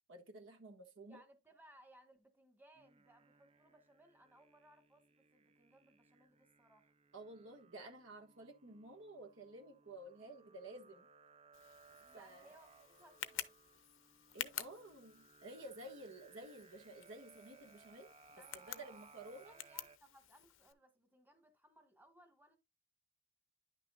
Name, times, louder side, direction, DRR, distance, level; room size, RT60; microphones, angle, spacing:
voice 1, 0.1-1.2 7.1-11.1 12.1-12.5 14.3-18.1 18.5-19.6, right 2 dB, 70° right, 1.5 m, -53 dB
voice 2, 1.1-6.9 12.0-13.5 18.3-22.6, right 1 dB, 10° right, 1.3 m, -65 dB
sound 1, 2.8-20.0, right 5 dB, 30° right, 0.4 m, -65 dB
Tick, 11.5-20.7, left 12 dB, 75° left, 0.7 m, -50 dB
10.0 x 6.1 x 2.3 m
head